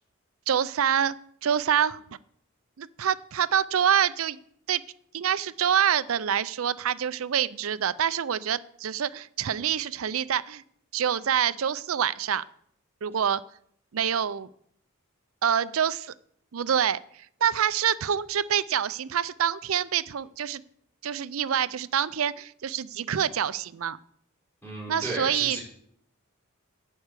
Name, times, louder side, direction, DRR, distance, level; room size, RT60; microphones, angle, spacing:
voice 1, 0.5-1.2 1.4-2.0 2.8-4.4 4.7-4.8 5.1-10.6 10.9-12.4 13.0-13.4 13.9-14.5 15.4-16.1 16.5-17.0 17.4-20.6 21.0-24.0 24.9-25.6, right 8 dB, 80° right, 16 dB, 0.5 m, -26 dB
voice 2, 24.6-25.6, right 1 dB, 10° left, -4 dB, 5.5 m, -34 dB
11.5 x 4.5 x 8.2 m, 0.66 s
head